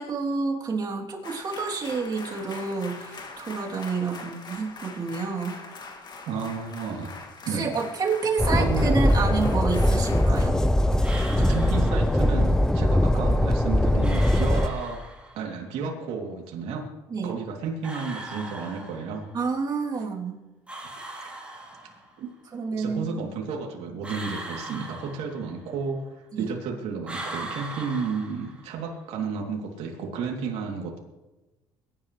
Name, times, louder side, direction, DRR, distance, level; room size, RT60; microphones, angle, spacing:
voice 1, 0.0-5.6 7.5-10.6 12.7-12.8 17.1-17.4 19.3-20.4 22.5-23.2 26.3-26.5, right 4 dB, 40° right, -2 dB, 3.3 m, -29 dB
sound 1, 1.2-10.5, left 3 dB, 40° left, 2.3 m, -42 dB
voice 2, 6.3-7.1 7.4-7.8 8.4-9.0 11.4-15.0 15.3-16.9 17.2-19.3 21.2-21.3 22.2-22.3 22.8-31.0, right 5 dB, 70° right, 0 dB, 3.1 m, -32 dB
Train, 8.4-14.7, left 1 dB, 5° left, 0.6 m, -21 dB
sound 2, 11.0-12.5 14.0-15.5 17.8-19.4 20.7-22.2 24.0-25.8 27.0-28.9, right 2 dB, 10° right, 3.7 m, -39 dB
22.5 x 11.5 x 3.3 m, 1.1 s
supercardioid pair, 95°, 11 cm